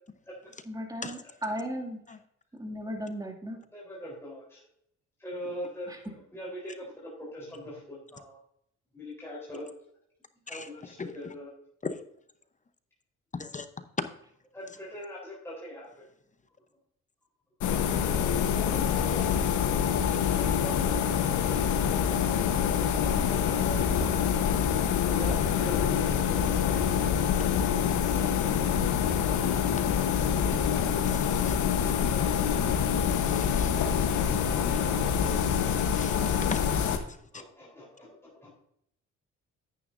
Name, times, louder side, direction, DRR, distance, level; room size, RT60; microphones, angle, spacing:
voice 1, 0.6-2.2 2.5-3.6 5.9-6.0, equal, 10° right, 2.2 m, -36 dB
voice 2, 3.7-4.6 5.2-5.9 6.3-8.4 8.9-9.7 10.5-11.5 14.5-16.1 18.5-22.4 22.7-24.1 25.0-26.7 37.0-37.1 37.3-38.5, equal, 10° left, 3.8 m, -42 dB
voice 3, 13.3-13.7 29.8-29.9 31.1-31.5 33.3-33.7 36.0-36.1 36.4-36.9, left 4 dB, 25° left, 0.7 m, -37 dB
sound 1, 17.6-37.0, left 8 dB, 80° left, 1.1 m, -26 dB
9.7 x 9.3 x 2.6 m
cardioid pair, 90°, 30 cm